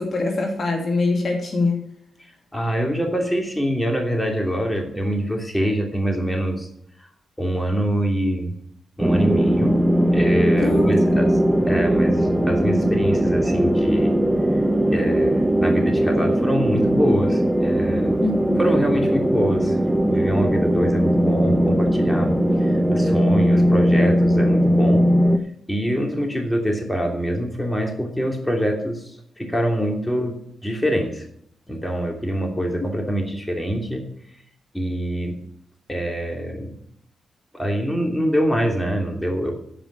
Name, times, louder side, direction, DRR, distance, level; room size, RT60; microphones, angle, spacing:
voice 1, 0.0-1.8 10.6-11.2 18.2-18.6, left 3 dB, 55° left, 1 dB, 2.6 m, -23 dB
voice 2, 2.5-6.7 7.4-8.5 9.0-9.7 10.1-11.4 11.7-14.2 14.9-18.2 18.6-19.8 20.0-22.3 22.6-25.0 25.7-29.1 29.4-31.2 31.7-34.0 34.7-35.3 35.9-36.7 37.5-39.6, equal, 10° left, 1 dB, 2.9 m, -25 dB
sound 1, 9.0-25.4, equal, 10° right, 1.0 m, -19 dB
13.0 x 5.4 x 6.7 m, 0.68 s
supercardioid pair, 45°, 0 cm